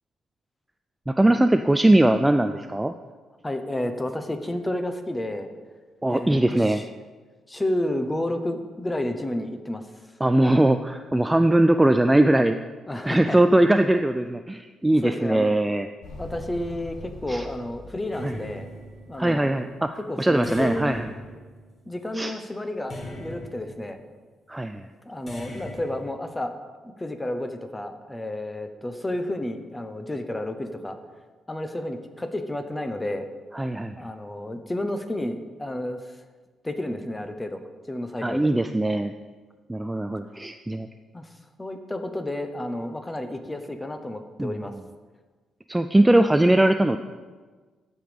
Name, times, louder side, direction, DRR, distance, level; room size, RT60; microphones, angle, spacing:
voice 1, 1.1-2.9 6.0-6.8 10.2-12.6 13.1-15.9 17.3-17.4 18.2-18.3 19.2-21.0 22.1-22.3 24.5-24.9 33.5-34.0 38.2-39.1 39.7-40.9 44.4-44.5 45.7-47.0, right 1 dB, 10° right, 8 dB, 0.3 m, -20 dB
voice 2, 3.4-5.5 6.1-6.8 7.5-9.8 12.9-13.4 15.0-15.5 16.2-18.7 19.1-19.5 20.1-21.0 21.9-24.0 25.1-26.6 26.8-31.0 31.5-33.3 34.0-36.0 36.6-38.5 41.1-41.3 41.6-44.7, left 1 dB, 15° left, 8 dB, 0.9 m, -31 dB
Motorcycle, 16.0-19.9, left 1 dB, 70° left, 1.8 m, -43 dB
sound 1, 18.1-19.4 20.4-22.1 22.9-24.0 25.3-26.1, left 1 dB, 35° left, 1.6 m, -40 dB
13.5 x 5.3 x 5.0 m, 1.4 s
cardioid pair, 115°, 0 cm